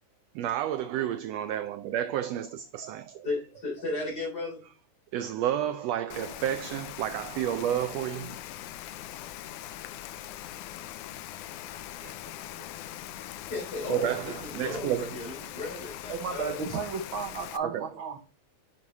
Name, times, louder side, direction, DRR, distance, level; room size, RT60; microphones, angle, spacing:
voice 1, 0.3-3.3 5.1-8.4 12.0-12.1 13.9-15.1 17.6-17.9, right 11 dB, 85° right, 1.4 m, -31 dB
voice 2, 3.2-4.6 13.5-16.6, left 2 dB, 30° left, 4.1 m, -35 dB
Rain, 6.1-17.6, left 12 dB, 80° left, 2.1 m, -41 dB
voice 3, 16.1-18.2, right 5 dB, 65° right, 1.3 m, -33 dB
8.3 x 6.8 x 2.6 m
omnidirectional pair, 3.5 m